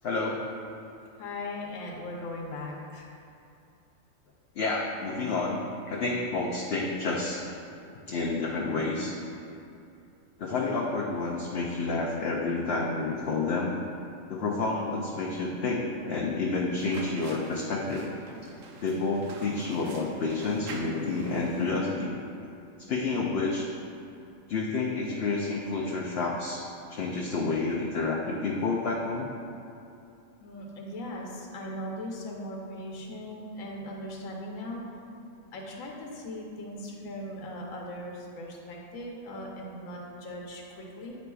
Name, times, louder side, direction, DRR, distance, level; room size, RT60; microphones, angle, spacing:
voice 1, 0.0-0.4 4.6-5.6 5.9-7.4 8.1-9.2 10.4-13.8 14.3-18.1 18.8-22.1 22.9-23.7 24.5-29.3, left 3 dB, 60° left, -2 dB, 0.7 m, -29 dB
voice 2, 1.2-3.1 30.4-34.8 35.5-41.2, left 1 dB, 80° left, -1 dB, 1.2 m, -39 dB
sound 1, 16.8-21.8, right 3 dB, 80° right, 1.1 m, -44 dB
9.4 x 5.0 x 2.3 m, 2.6 s
omnidirectional pair, 1.4 m